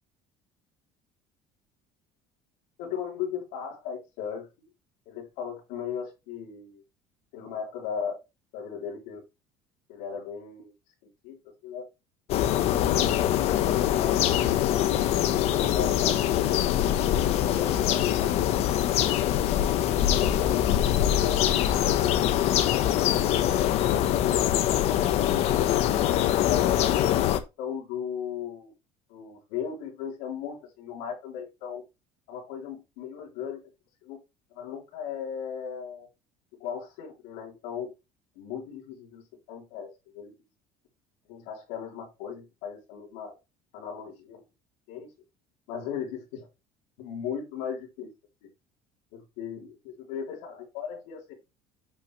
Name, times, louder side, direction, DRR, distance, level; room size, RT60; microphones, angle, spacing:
voice 1, 2.8-4.5 5.1-6.8 7.3-8.2 8.5-9.2 9.9-10.7 11.2-11.9 12.5-12.9 13.6-14.4 15.2-16.6 17.5-18.3 19.9-20.7 21.0-21.7 26.4-28.7 29.1-31.8 32.3-33.6 34.0-34.2 34.5-36.1 36.6-37.9 38.4-39.2 39.5-40.3 41.3-43.4 43.7-44.4 44.9-45.1 45.7-46.5 47.0-48.1 48.4-48.5 49.1-51.3, left 7 dB, 90° left, -2 dB, 3.5 m, -37 dB
sound 1, 12.3-27.4, left 11 dB, 60° left, 1.1 m, -23 dB
9.3 x 6.4 x 3.2 m, 0.25 s
cardioid pair, 140°, 12 cm